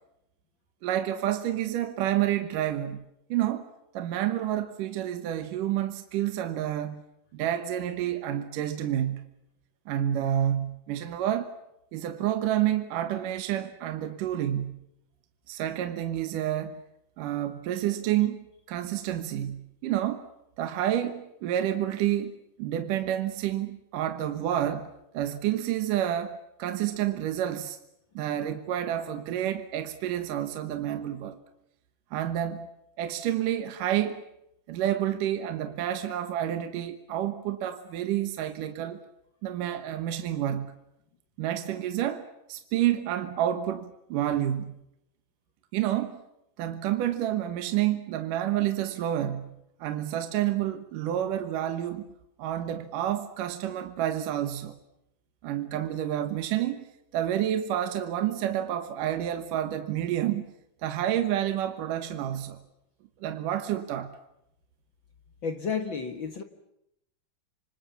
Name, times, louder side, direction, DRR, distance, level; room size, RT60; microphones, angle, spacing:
voice 1, 0.8-7.0 7.3-9.3 9.9-11.5 11.9-14.9 15.5-16.8 17.2-20.3 20.6-27.8 28.2-31.4 32.1-32.7 33.0-34.2 34.7-39.0 39.4-40.8 41.4-44.8 45.7-46.2 46.6-52.1 52.4-54.8 55.4-56.9 57.1-60.5 60.8-62.6 63.2-64.2, right 11 dB, 70° right, 2.7 m, -29 dB
voice 2, 65.4-66.4, left 6 dB, 55° left, 1.4 m, -31 dB
27.5 x 25.5 x 7.2 m
omnidirectional pair, 4.1 m